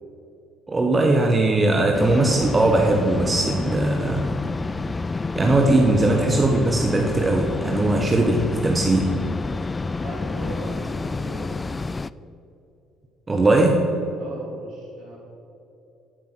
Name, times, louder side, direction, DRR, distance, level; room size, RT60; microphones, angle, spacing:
voice 1, 0.7-4.3 5.3-9.2 13.3-13.9, right 2 dB, 25° right, 1 dB, 1.2 m, -20 dB
sound 1, 1.9-12.1, left 3 dB, 25° left, 0.3 m, -29 dB
voice 2, 9.8-11.7 14.1-15.2, right 2 dB, 70° right, -2 dB, 2.8 m, -39 dB
12.5 x 5.4 x 6.3 m, 2.7 s
hypercardioid pair, 55°, 0 cm